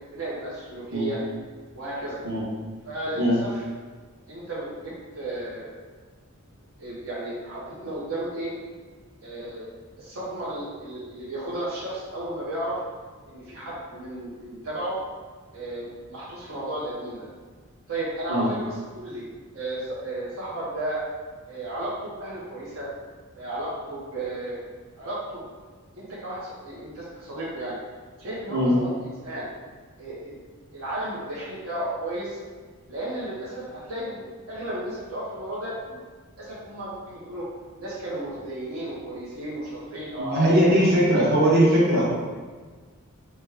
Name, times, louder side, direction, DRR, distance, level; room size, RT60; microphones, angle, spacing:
voice 1, 0.1-1.2 1.7-2.2 2.9-3.6 4.3-5.7 6.8-8.5 9.2-9.7 10.0-12.8 13.3-15.0 15.5-17.3 17.9-19.3 19.5-21.0 21.5-22.9 23.4-24.6 25.0-25.5 26.0-27.8 28.2-29.5 30.0-30.3 30.7-32.4 32.9-36.0 36.4-37.5 37.8-40.7, right 1 dB, 75° right, -7 dB, 0.8 m, -33 dB
voice 2, 40.2-42.1, equal, 50° right, -6 dB, 1.1 m, -20 dB
4.8 x 2.2 x 3.4 m, 1.5 s
head